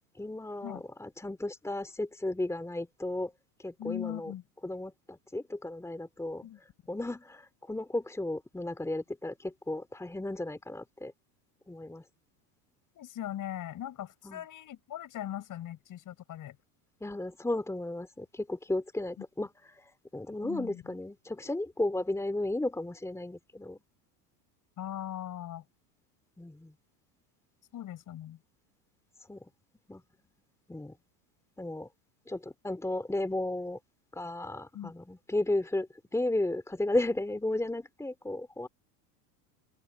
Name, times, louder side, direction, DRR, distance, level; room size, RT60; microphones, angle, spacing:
voice 1, 0.2-3.3 3.6-4.3 4.6-6.5 6.9-11.1 11.7-12.0 14.2-14.4 17.0-23.8 26.4-26.7 29.3-29.4 29.9-30.0 30.7-30.9 31.6-31.9 32.3-33.8 34.1-38.7, left 1 dB, 5° left, 2.9 m, -34 dB
voice 2, 3.8-4.4 6.4-6.6 12.9-16.6 19.2-19.3 20.4-20.9 24.8-25.6 27.7-28.4 34.7-34.9, left 11 dB, 45° left, 6.6 m, -40 dB
open air
supercardioid pair, 110°, 46 cm